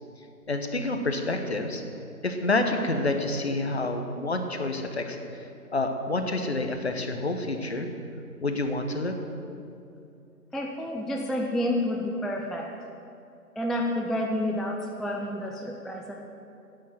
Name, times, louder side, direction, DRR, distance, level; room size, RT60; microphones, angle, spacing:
voice 1, 0.5-1.8 2.2-5.2 5.7-7.9 8.4-9.1, left 2 dB, 40° left, 5 dB, 1.1 m, -28 dB
voice 2, 10.5-12.7 13.6-16.2, left 1 dB, ahead, 0 dB, 0.4 m, -29 dB
10.0 x 9.0 x 7.7 m, 2.6 s
figure-of-eight pair, 160°, 47 cm